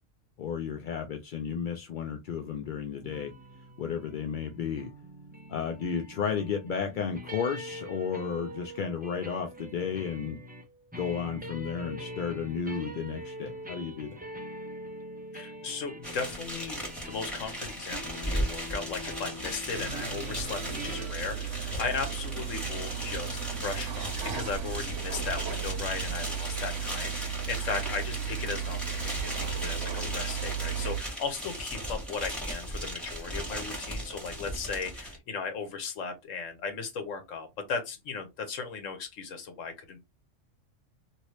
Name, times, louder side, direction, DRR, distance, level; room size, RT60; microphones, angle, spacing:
voice 1, 0.4-3.3 3.8-4.9 5.5-10.4 11.0-14.2, left 7 dB, 60° left, 0.5 m, -33 dB
sound 1, 3.0-21.1, equal, 15° right, 0.3 m, -43 dB
voice 2, 15.3-40.0, left 5 dB, 80° left, 1.2 m, -37 dB
sound 2, 16.0-35.2, equal, ahead, 1.6 m, -37 dB
sound 3, 19.7-31.0, right 8 dB, 70° right, 1.1 m, -35 dB
3.0 x 2.7 x 3.0 m
omnidirectional pair, 1.3 m